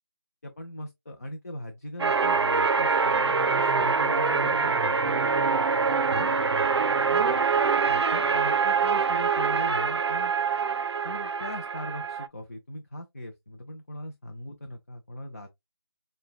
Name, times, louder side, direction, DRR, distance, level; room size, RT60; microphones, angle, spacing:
voice 1, 0.4-5.2 6.1-6.4 7.1-7.3 7.9-10.3 11.0-15.5, left 1 dB, 35° left, 0.6 m, -40 dB
sound 1, 2.0-12.3, right 5 dB, 90° right, 0.5 m, -24 dB
6.3 x 2.2 x 2.2 m
figure-of-eight pair, 170°, 14 cm